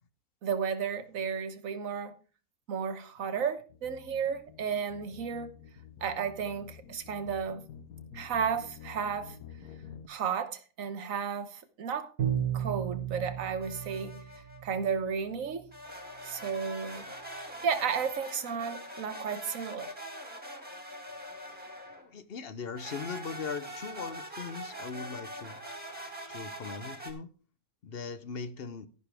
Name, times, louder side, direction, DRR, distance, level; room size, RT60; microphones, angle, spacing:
voice 1, 0.4-2.1 2.7-5.5 6.0-7.6 8.1-9.4 10.1-12.1 12.5-14.2 14.6-15.7 16.2-17.1 17.6-19.9, right 6 dB, 65° right, 1.5 m, -33 dB
sound 1, 3.7-10.1, left 7 dB, 80° left, 1.5 m, -49 dB
Bowed string instrument, 12.2-15.0, right 9 dB, 90° right, 2.0 m, -34 dB
sound 2, 13.6-14.6 15.7-22.1 22.7-27.1, equal, 5° right, 2.0 m, -43 dB
voice 2, 22.0-25.6 26.3-27.3 27.8-28.9, left 5 dB, 50° left, 0.9 m, -39 dB
11.5 x 11.0 x 3.4 m
omnidirectional pair, 1.5 m